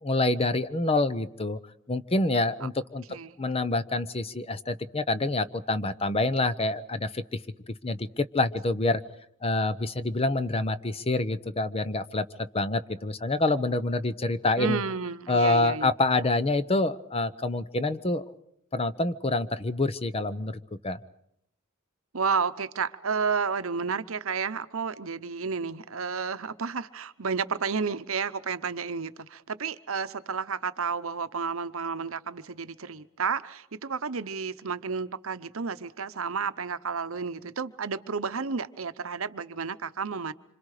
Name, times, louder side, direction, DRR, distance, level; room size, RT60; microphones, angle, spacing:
voice 1, 0.0-1.6 1.9-3.0 3.4-7.4 7.8-9.0 9.4-14.8 15.3-18.3 18.7-21.0, left 2 dB, 30° left, 0.8 m, -27 dB
voice 2, 14.6-15.9 22.1-40.3, right 5 dB, 70° right, 0.9 m, -31 dB
26.5 x 26.5 x 4.9 m
head